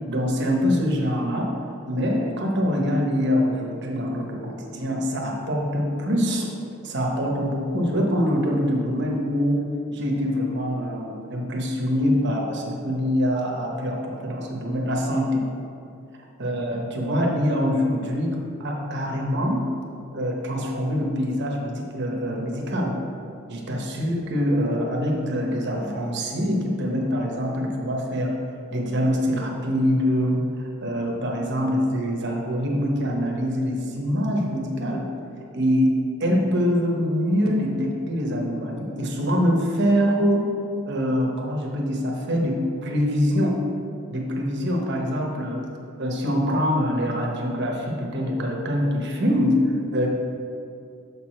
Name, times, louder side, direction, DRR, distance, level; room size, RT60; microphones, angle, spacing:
voice 1, 0.1-1.5 1.9-6.5 6.8-9.6 9.9-15.4 16.4-19.7 20.1-22.9 23.5-28.3 28.7-30.4 30.8-35.1 35.5-40.5 40.9-43.6 44.1-45.6 46.0-50.1, equal, 50° right, 0 dB, 0.9 m, -24 dB
6.7 x 4.8 x 4.3 m, 2.6 s
head